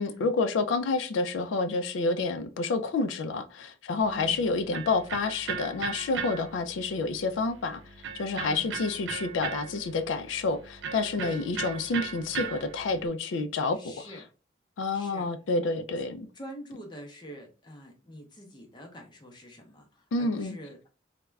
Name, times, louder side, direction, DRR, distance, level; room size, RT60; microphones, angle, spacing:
voice 1, 0.0-7.8 8.1-14.1 14.8-16.3 20.1-20.6, left 3 dB, 85° left, 0.4 m, -29 dB
Electric guitar, 4.0-13.1, right 6 dB, 75° right, 0.4 m, -38 dB
voice 2, 13.7-14.2 14.9-15.3 16.3-20.9, equal, 25° left, 0.5 m, -45 dB
2.3 x 2.1 x 3.1 m
head